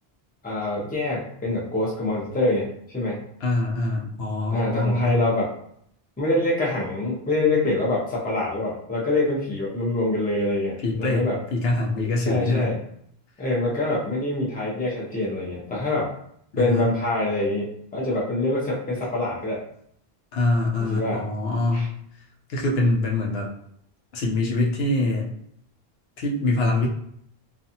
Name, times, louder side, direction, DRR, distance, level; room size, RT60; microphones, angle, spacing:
voice 1, 0.4-3.2 4.5-5.5 6.2-11.4 12.3-12.8 13.4-16.1 16.6-19.6 20.8-21.2 21.7-21.9, left 2 dB, 10° left, -4 dB, 0.5 m, -25 dB
voice 2, 3.4-5.2 10.8-12.7 16.5-16.9 20.3-21.9 22.5-23.5 24.1-25.4 26.2-26.9, left 2 dB, 80° left, -1 dB, 0.9 m, -24 dB
2.5 x 2.3 x 2.7 m, 0.69 s
omnidirectional pair, 1.0 m